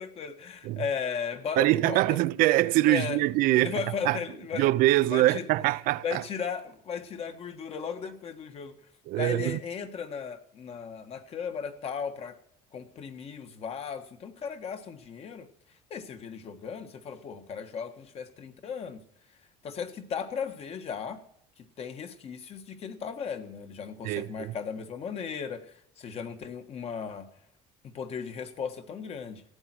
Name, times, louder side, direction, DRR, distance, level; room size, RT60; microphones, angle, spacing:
voice 1, 0.0-2.2 2.9-3.2 3.5-4.7 5.1-5.4 6.0-8.8 9.2-12.4 12.7-15.5 15.9-19.0 19.6-21.2 21.6-27.3 27.8-29.4, left 6 dB, 45° left, 1.6 m, -36 dB
voice 2, 1.6-4.2 4.5-6.2 9.1-9.6 24.0-24.5, right 16 dB, 70° right, 0.6 m, -24 dB
15.0 x 9.7 x 6.2 m
cardioid pair, 125°, 15 cm